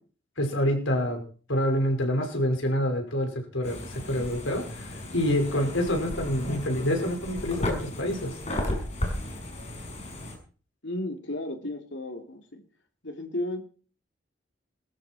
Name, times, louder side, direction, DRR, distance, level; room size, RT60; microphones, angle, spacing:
voice 1, 0.4-1.2 1.5-8.3, equal, 85° left, 3 dB, 5.6 m, -27 dB
sound 1, 3.6-10.3, left 1 dB, 35° left, 6.2 m, -34 dB
voice 2, 10.8-12.6 13.0-13.6, left 1 dB, 70° left, 4 dB, 3.2 m, -34 dB
21.0 x 13.5 x 4.5 m, 0.41 s
head